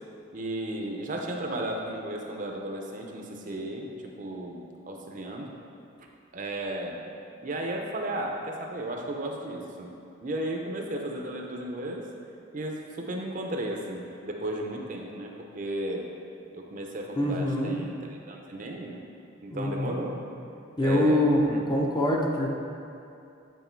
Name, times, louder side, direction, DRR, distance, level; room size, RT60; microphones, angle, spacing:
voice 1, 0.3-5.5 6.3-7.0 7.4-9.9 10.2-12.1 12.5-16.1 16.5-19.0 19.4-20.2 20.8-21.7, right 1 dB, 40° right, 1 dB, 0.6 m, -34 dB
voice 2, 17.2-17.8 19.5-20.1 20.8-21.4 21.7-22.5, left 1 dB, 20° left, -1 dB, 0.6 m, -25 dB
8.2 x 3.7 x 4.5 m, 2.6 s
head